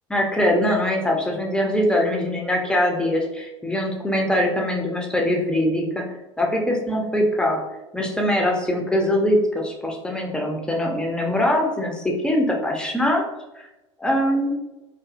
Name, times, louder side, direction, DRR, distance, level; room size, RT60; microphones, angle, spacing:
voice 1, 0.1-6.0 6.4-7.6 7.9-13.2 14.0-14.5, left 1 dB, 5° left, 0 dB, 0.5 m, -22 dB
2.6 x 2.5 x 2.4 m, 1.0 s
figure-of-eight pair, 75°, 16 cm